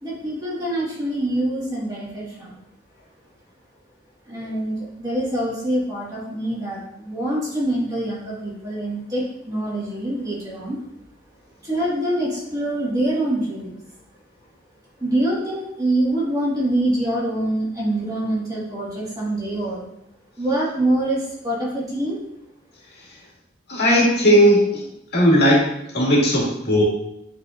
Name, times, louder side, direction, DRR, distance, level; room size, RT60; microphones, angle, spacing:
voice 1, 0.0-2.5 4.2-10.8 11.6-13.8 15.0-19.8 20.4-22.2, right 1 dB, 20° right, -6 dB, 1.7 m, -25 dB
voice 2, 23.7-24.8 25.1-25.7 25.9-26.8, equal, 55° left, -5 dB, 2.1 m, -16 dB
9.3 x 4.1 x 2.5 m, 0.79 s
head